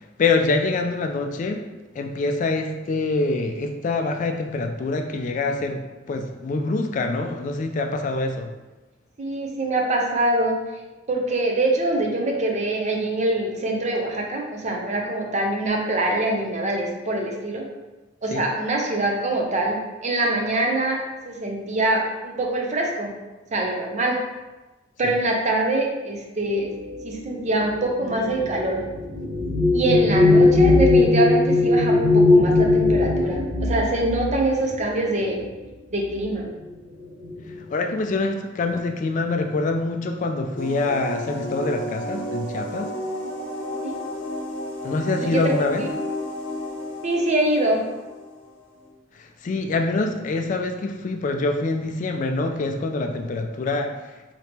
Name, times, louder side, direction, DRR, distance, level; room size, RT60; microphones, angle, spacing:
voice 1, 0.2-1.6 1.9-8.5 18.3-18.5 25.0-25.2 37.7-42.9 44.8-45.9 49.1-54.3, left 3 dB, 40° left, 4 dB, 0.3 m, -25 dB
voice 2, 9.2-10.6 11.1-17.7 18.2-23.1 23.5-24.2 25.0-26.7 27.0-28.8 29.7-35.4 35.9-36.5 43.8-44.0 45.2-45.9 47.0-47.8, right 2 dB, 35° right, 0 dB, 0.6 m, -24 dB
sound 1, 26.7-35.6 36.5-36.7 37.0-37.6, left 2 dB, 65° right, 1.4 m, -20 dB
sound 2, 40.6-48.9, left 1 dB, 70° left, 0.7 m, -32 dB
3.5 x 2.8 x 4.2 m, 1.1 s
head